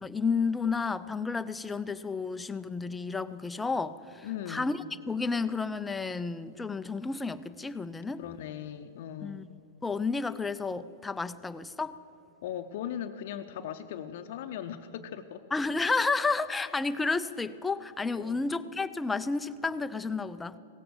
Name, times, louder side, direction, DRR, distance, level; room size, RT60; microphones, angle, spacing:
voice 1, 0.0-8.2 9.2-9.5 9.8-12.0 15.5-20.6, left 4 dB, 10° left, 13 dB, 0.4 m, -31 dB
voice 2, 4.2-4.7 8.2-9.5 12.4-15.4 18.1-18.4, left 10 dB, 60° left, 7 dB, 0.6 m, -39 dB
17.0 x 7.8 x 6.9 m, 2.9 s
hypercardioid pair, 130°, 0 cm